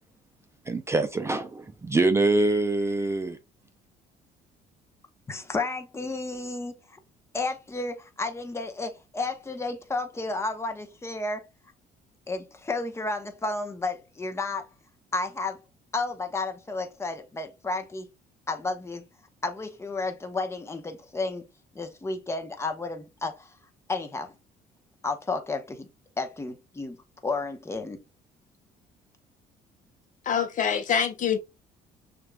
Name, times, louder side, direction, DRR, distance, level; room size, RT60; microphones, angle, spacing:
voice 1, 0.7-3.4, right 2 dB, 15° right, 0.5 m, -24 dB
voice 2, 5.3-7.0 7.3-11.4 12.3-14.7 15.1-15.6 15.9-18.1 18.5-19.0 19.4-21.5 21.7-23.5 23.9-24.3 25.0-25.9 26.2-27.0 27.2-28.0, left 3 dB, 15° left, 0.9 m, -32 dB
voice 3, 30.2-31.4, left 7 dB, 50° left, 0.9 m, -25 dB
6.4 x 2.6 x 2.3 m
cardioid pair, 110°, 17 cm